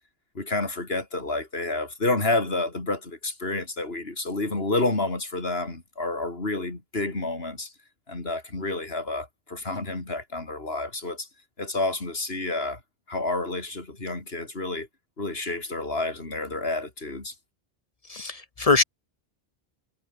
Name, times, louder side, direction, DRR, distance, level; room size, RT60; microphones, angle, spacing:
voice 1, 0.4-7.7 8.1-11.3 11.6-12.8 13.1-14.9 15.2-17.3, left 2 dB, 75° left, 3.9 m, -29 dB
voice 2, 18.1-18.8, left 3 dB, 40° left, 0.8 m, -22 dB
omnidirectional pair, 1.0 m